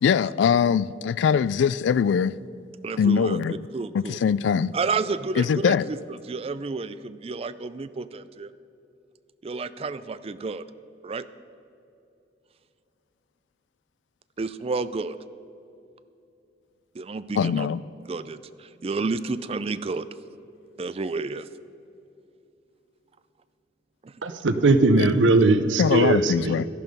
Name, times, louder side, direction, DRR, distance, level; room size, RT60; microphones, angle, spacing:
voice 1, 0.0-2.4 3.0-3.6 3.9-4.7 5.4-5.9 17.4-17.8 25.0-25.1 25.8-26.7, left 7 dB, 70° left, 0.3 m, -22 dB
voice 2, 2.8-3.4 3.7-4.2 4.7-8.5 9.4-10.6 11.0-11.2 14.4-15.2 16.9-17.7 18.1-20.1 20.8-21.5 24.0-24.1, right 4 dB, 30° right, 0.4 m, -30 dB
voice 3, 24.2-26.5, right 3 dB, 85° right, 0.8 m, -19 dB
12.5 x 11.5 x 5.3 m
head